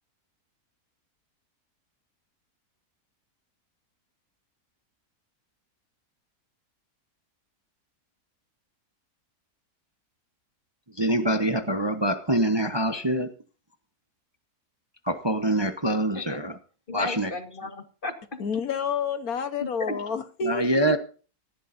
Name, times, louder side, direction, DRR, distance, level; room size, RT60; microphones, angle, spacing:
voice 1, 11.0-13.3 15.1-16.6 16.9-17.3 20.4-21.0, right 1 dB, 20° right, 1.0 m, -25 dB
voice 2, 16.9-18.4 19.6-20.0, left 2 dB, 35° left, 1.9 m, -34 dB
voice 3, 18.4-21.0, left 5 dB, 70° left, 1.7 m, -29 dB
18.0 x 15.0 x 2.7 m
omnidirectional pair, 1.6 m